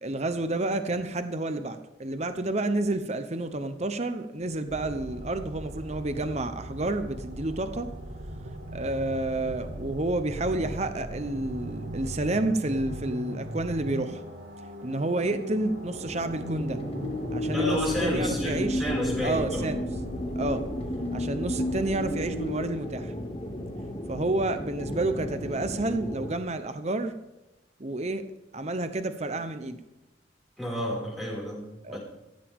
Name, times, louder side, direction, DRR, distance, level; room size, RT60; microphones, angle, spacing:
voice 1, 0.0-7.9 8.7-14.2 14.8-16.8 17.3-18.8 19.2-19.8 20.3-20.6 21.1-23.1 24.1-27.1 27.8-28.2 28.5-29.8 31.8-32.0, right 2 dB, 35° right, 9 dB, 0.9 m, -30 dB
sound 1, 4.7-22.7, right 1 dB, 70° right, 2.9 m, -39 dB
sound 2, 15.6-26.3, left 1 dB, 30° left, 2.4 m, -33 dB
voice 2, 17.5-19.7 30.6-32.0, equal, ahead, -4 dB, 5.8 m, -31 dB
16.0 x 15.5 x 3.7 m, 0.98 s
head